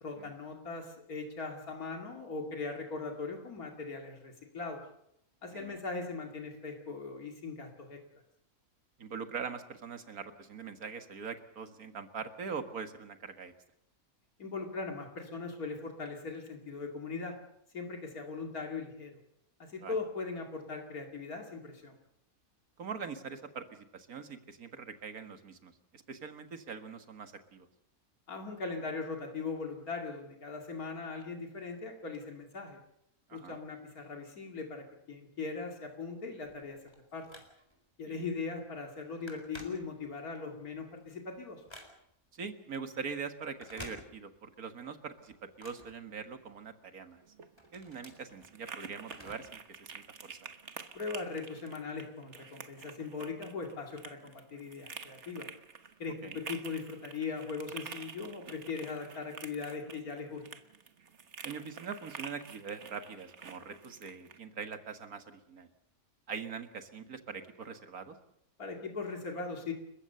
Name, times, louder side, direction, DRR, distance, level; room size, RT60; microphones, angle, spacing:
voice 1, 0.0-4.8 5.4-8.0 14.4-17.4 17.7-19.2 19.6-22.0 28.3-32.8 33.3-36.8 37.1-37.3 38.0-41.6 50.9-55.5 56.0-60.4 68.6-69.7, left 4 dB, 85° left, 2 dB, 2.9 m, -39 dB
voice 2, 5.4-5.8 9.0-13.5 19.8-20.0 22.8-27.7 33.3-33.6 38.1-38.2 42.3-47.2 47.7-50.5 56.2-56.4 61.4-65.7 66.3-68.2, right 6 dB, 80° right, 8 dB, 2.1 m, -43 dB
Telephone, 36.5-37.9 38.4-38.6 38.8-40.3 40.8-42.3 43.5-44.6 44.9-46.7 47.1-49.6 49.9-50.0 50.9-51.0, left 1 dB, 15° left, 4.2 m, -52 dB
sound 1, 47.2-64.4, right 5 dB, 55° right, 1.6 m, -48 dB
30.0 x 15.0 x 6.8 m, 0.79 s
omnidirectional pair, 1.5 m